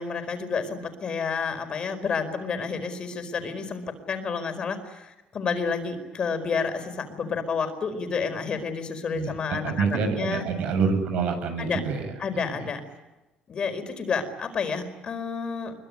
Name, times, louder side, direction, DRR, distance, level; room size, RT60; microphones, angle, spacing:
voice 1, 0.0-10.4 11.6-11.8 12.2-12.8 13.5-15.7, left 5 dB, 35° left, 8 dB, 4.8 m, -30 dB
voice 2, 9.1-12.1 12.5-12.7, right 5 dB, 70° right, 8 dB, 7.8 m, -27 dB
25.5 x 23.5 x 9.7 m, 1.0 s
cardioid pair, 145°, 3 cm